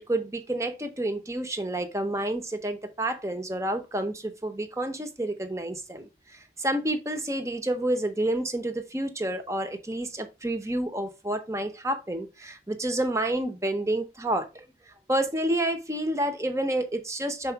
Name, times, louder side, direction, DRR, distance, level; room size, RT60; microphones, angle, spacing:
voice 1, 0.0-14.7 15.1-17.5, right 1 dB, 15° right, 0.8 m, -29 dB
5.9 x 4.8 x 4.6 m
head